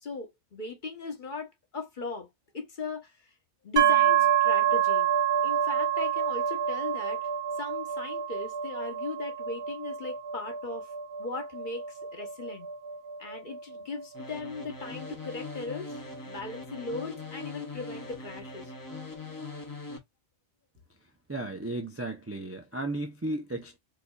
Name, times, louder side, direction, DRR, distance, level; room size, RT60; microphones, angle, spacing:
voice 1, 0.0-2.3 2.5-3.1 3.6-5.1 5.4-7.2 7.6-10.9 11.2-12.7 13.2-16.0 16.3-18.7, left 4 dB, 45° left, 1.1 m, -38 dB
sound 1, 3.8-17.4, right 9 dB, 70° right, 1.1 m, -28 dB
sound 2, 14.1-20.0, left 3 dB, 20° left, 0.8 m, -42 dB
voice 2, 21.3-23.8, right 2 dB, 20° right, 0.4 m, -34 dB
4.6 x 2.6 x 2.3 m
omnidirectional pair, 1.2 m